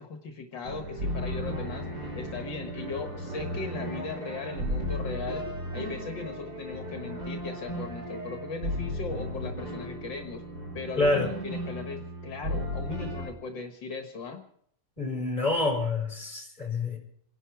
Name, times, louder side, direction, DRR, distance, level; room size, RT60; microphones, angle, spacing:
voice 1, 0.0-1.9 2.2-5.4 5.7-10.5 10.7-14.4, left 4 dB, 75° left, 6 dB, 2.3 m, -38 dB
sound 1, 0.6-13.3, equal, 55° right, 4.8 m, -35 dB
voice 2, 11.0-11.3 15.0-17.0, left 2 dB, 20° left, 1 dB, 5.4 m, -27 dB
28.0 x 11.0 x 4.7 m, 0.65 s
omnidirectional pair, 2.1 m